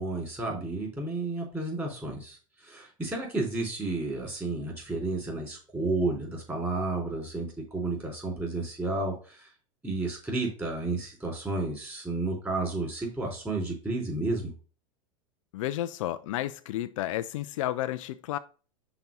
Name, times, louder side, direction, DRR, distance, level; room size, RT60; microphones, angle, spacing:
voice 1, 0.0-9.5 9.8-14.5, right 2 dB, 10° right, 3.8 m, -32 dB
voice 2, 15.5-18.4, left 14 dB, 65° left, 0.4 m, -32 dB
5.9 x 4.1 x 5.3 m
hypercardioid pair, 110°, 18 cm